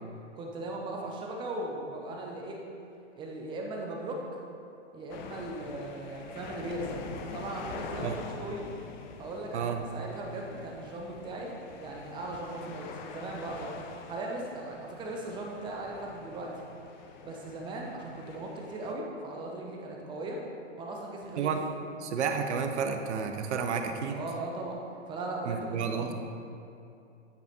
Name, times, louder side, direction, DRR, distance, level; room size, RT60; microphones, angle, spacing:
voice 1, 0.4-2.6 3.2-4.3 4.9-7.0 7.3-8.7 9.2-11.5 11.8-13.8 14.0-16.5 17.2-20.4 20.8-21.5 24.1-24.8 25.1-26.1, right 2 dB, 15° right, 0 dB, 0.5 m, -38 dB
sound 1, 5.1-18.9, left 5 dB, 40° left, 0.5 m, -45 dB
voice 2, 22.0-24.2 25.4-26.1, right 6 dB, 65° right, 5 dB, 0.7 m, -31 dB
9.1 x 4.8 x 2.8 m, 2.7 s
hypercardioid pair, 125°, 37 cm